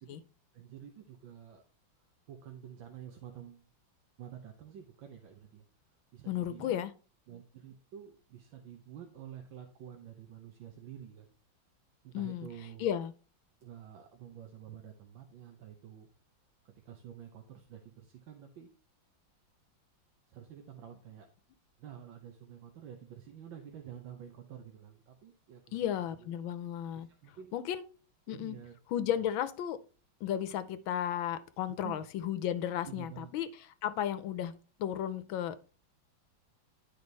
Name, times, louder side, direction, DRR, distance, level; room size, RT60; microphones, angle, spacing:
voice 1, 0.5-1.6 2.3-3.7 4.2-5.6 6.1-6.8 7.3-11.3 12.0-12.9 13.6-16.1 16.8-18.7 20.3-21.3 21.8-26.3 26.9-27.5 28.3-28.8 29.2-29.3 31.7-32.0 32.9-33.3, right 9 dB, 75° right, 4 dB, 1.7 m, -49 dB
voice 2, 6.3-6.9 12.1-12.5 12.8-13.1 25.7-27.1 27.5-27.8 28.3-28.6 28.9-29.8 30.2-33.5 33.8-34.5 34.8-35.6, left 10 dB, 85° left, 13 dB, 1.6 m, -34 dB
10.5 x 5.0 x 4.0 m, 0.36 s
omnidirectional pair, 2.1 m